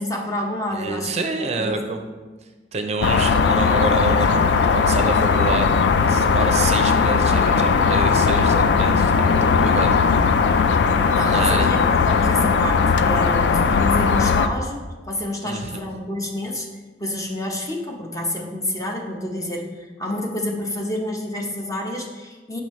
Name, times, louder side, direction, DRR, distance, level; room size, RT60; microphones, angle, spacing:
voice 1, 0.0-2.0 11.1-14.8 15.1-16.7 17.0-22.6, left 1 dB, 20° left, 0 dB, 0.8 m, -28 dB
voice 2, 0.7-2.0 2.7-5.7 6.1-10.0 11.2-11.7 15.4-15.8, right 3 dB, 40° right, 5 dB, 0.5 m, -27 dB
sound 1, 3.0-14.5, left 5 dB, 80° left, 0.3 m, -18 dB
7.2 x 5.4 x 3.1 m, 1.3 s
head